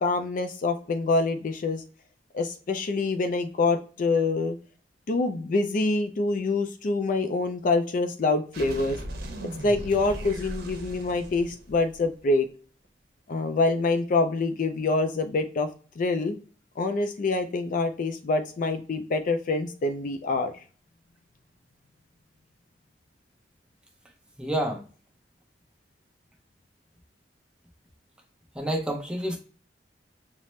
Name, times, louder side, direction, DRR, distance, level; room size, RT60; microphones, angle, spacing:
voice 1, 0.0-1.8 2.3-4.6 5.1-9.0 9.4-12.5 13.3-15.7 16.0-16.4 16.8-20.5, left 3 dB, 50° left, 7 dB, 0.4 m, -26 dB
sound 1, 8.5-12.2, right 1 dB, 60° right, 0.8 m, -38 dB
voice 2, 24.4-24.8 28.5-29.4, right 1 dB, 5° right, 1 dB, 0.7 m, -28 dB
5.6 x 2.0 x 3.1 m, 0.39 s
head